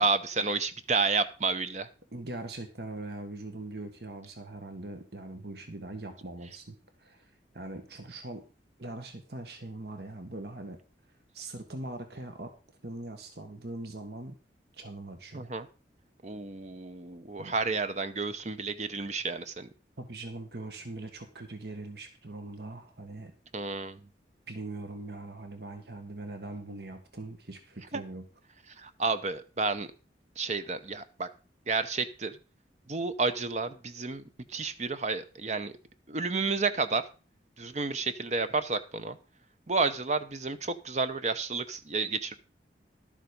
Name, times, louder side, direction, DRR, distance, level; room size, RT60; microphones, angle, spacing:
voice 1, 0.0-1.9 15.3-15.7 16.2-19.7 23.5-24.0 27.9-28.0 28.8-29.9 30.4-31.3 31.7-32.3 32.9-34.2 34.5-35.7 36.1-37.0 37.6-39.2 39.7-42.3, right 4 dB, 40° right, 11 dB, 0.8 m, -30 dB
voice 2, 2.1-7.2 7.5-8.4 8.8-10.8 11.3-12.5 12.8-14.4 14.7-15.5 17.4-17.5 20.0-23.3 24.5-28.2, right 2 dB, 65° right, 6 dB, 1.7 m, -41 dB
12.0 x 7.4 x 5.3 m, 0.34 s
head